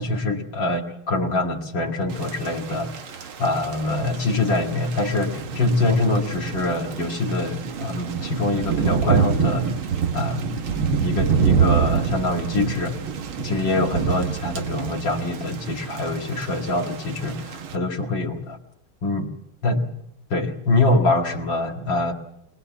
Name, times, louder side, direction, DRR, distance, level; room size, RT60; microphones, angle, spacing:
voice 1, 0.0-3.0 3.4-9.7 10.1-13.0 13.4-18.6 19.0-19.3 19.6-19.9 20.3-22.1, left 2 dB, 60° left, 1 dB, 2.6 m, -24 dB
Thunder / Rain, 2.1-17.8, right 6 dB, 75° right, 2.2 m, -27 dB
22.5 x 21.0 x 7.0 m, 0.76 s
omnidirectional pair, 2.3 m